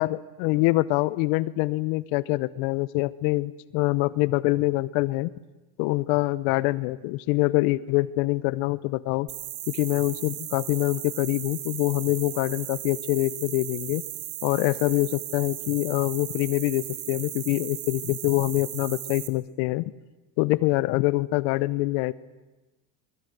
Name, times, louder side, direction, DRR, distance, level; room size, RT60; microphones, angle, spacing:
voice 1, 0.0-5.3 5.8-9.3 9.7-14.0 14.4-19.9 20.4-22.1, left 20 dB, 70° left, 17 dB, 0.9 m, -25 dB
sound 1, 9.3-19.3, right 14 dB, 85° right, 2.2 m, -36 dB
21.5 x 21.0 x 9.2 m, 1.1 s
supercardioid pair, 130°, 50 cm